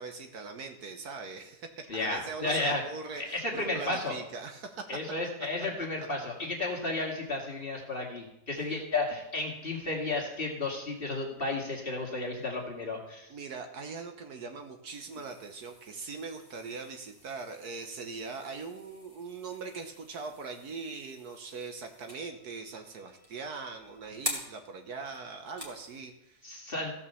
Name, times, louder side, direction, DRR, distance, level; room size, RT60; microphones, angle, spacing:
voice 1, 0.0-4.9 8.6-8.8 13.3-26.6, right 4 dB, 65° right, 5 dB, 1.5 m, -41 dB
voice 2, 1.9-2.8 3.2-4.2 4.9-13.3 26.4-26.9, left 2 dB, 30° left, -1 dB, 2.3 m, -33 dB
sound 1, 14.9-26.0, equal, 20° right, 2.1 m, -46 dB
15.0 x 5.5 x 6.9 m, 0.83 s
omnidirectional pair, 1.9 m